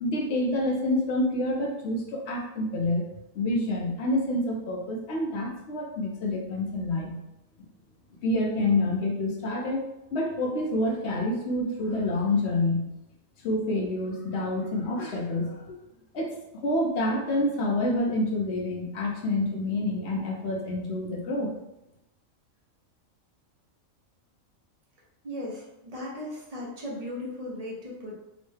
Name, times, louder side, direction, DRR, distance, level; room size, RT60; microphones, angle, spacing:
voice 1, 0.0-3.0 3.3-7.1 8.2-9.8 10.1-12.8 13.4-15.7 16.1-16.3 16.6-21.5, left 1 dB, 60° left, 0 dB, 0.8 m, -27 dB
voice 2, 25.2-28.2, left 1 dB, 40° right, -3 dB, 0.5 m, -37 dB
3.0 x 2.1 x 3.2 m, 0.87 s
omnidirectional pair, 1.4 m